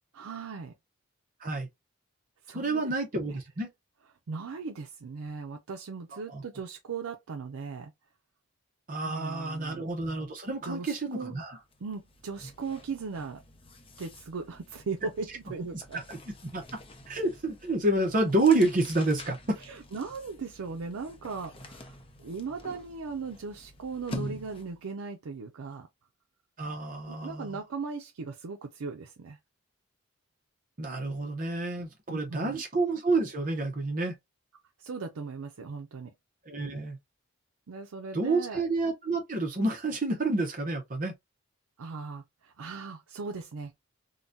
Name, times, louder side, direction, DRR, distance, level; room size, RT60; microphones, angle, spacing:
voice 1, 0.1-0.7 2.4-2.9 3.3-3.4 4.3-7.9 9.0-9.9 10.6-11.3 11.8-13.4 14.0-16.0 19.6-25.9 27.1-29.4 32.1-32.6 34.8-36.1 37.7-38.6 41.8-43.7, right 4 dB, 80° right, 0.5 m, -38 dB
voice 2, 2.5-3.7 6.1-6.4 8.9-11.6 15.9-16.2 16.5-16.6 17.1-19.6 26.6-27.6 30.8-34.2 36.5-37.0 38.1-41.1, right 2 dB, 40° right, 0.7 m, -29 dB
sound 1, 11.0-11.1 11.4-24.9, equal, 25° left, 0.5 m, -46 dB
3.8 x 2.2 x 2.5 m
head